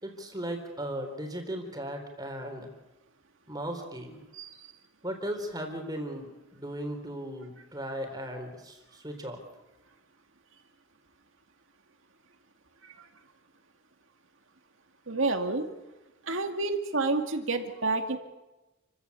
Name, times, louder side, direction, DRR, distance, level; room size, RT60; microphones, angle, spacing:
voice 1, 0.0-2.7 3.5-4.2 5.0-9.4, right 1 dB, 15° right, 4 dB, 3.8 m, -37 dB
voice 2, 4.4-4.7 12.8-12.9 15.1-15.7 16.3-18.2, right 3 dB, 60° right, 6 dB, 2.4 m, -29 dB
29.5 x 15.0 x 8.4 m, 1.1 s
head